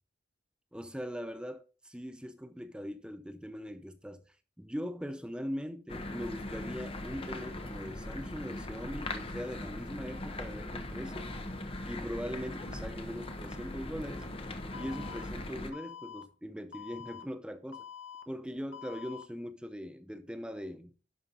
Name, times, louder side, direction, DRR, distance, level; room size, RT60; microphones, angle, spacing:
voice 1, 0.7-11.3 11.8-14.3 14.7-17.9 18.3-20.9, equal, 5° right, 0.6 m, -41 dB
sound 1, 5.9-15.7, left 1 dB, 30° left, 1.1 m, -40 dB
sound 2, 9.6-15.7, right 2 dB, 55° right, 1.8 m, -60 dB
Alarm, 14.7-15.2 15.7-16.2 16.7-17.2 17.7-18.2 18.7-19.2, left 8 dB, 80° left, 1.3 m, -46 dB
11.0 x 5.7 x 3.9 m
head